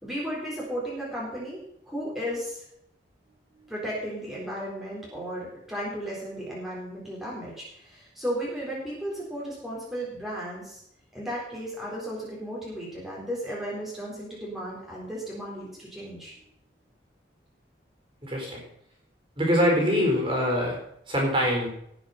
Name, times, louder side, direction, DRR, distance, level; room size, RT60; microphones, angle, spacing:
voice 1, 0.0-2.6 3.7-10.8 11.1-16.3, equal, ahead, -6 dB, 4.0 m, -34 dB
voice 2, 18.2-18.6 19.4-20.8 21.1-21.7, equal, 25° right, -1 dB, 4.4 m, -24 dB
17.5 x 7.2 x 5.8 m, 0.71 s
head